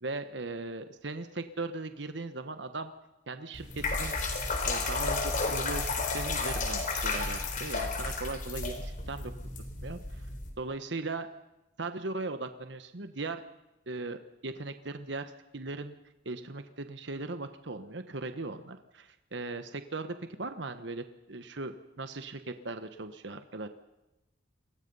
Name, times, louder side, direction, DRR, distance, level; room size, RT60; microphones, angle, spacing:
voice 1, 0.0-2.9 3.3-4.2 4.6-9.3 9.8-10.3 10.6-11.3 11.8-13.4 13.9-15.9 16.2-23.7, right 3 dB, 65° right, 9 dB, 1.2 m, -38 dB
sound 1, 3.5-10.5, left 3 dB, 45° left, 4.1 m, -32 dB
28.0 x 21.5 x 5.6 m, 0.99 s
head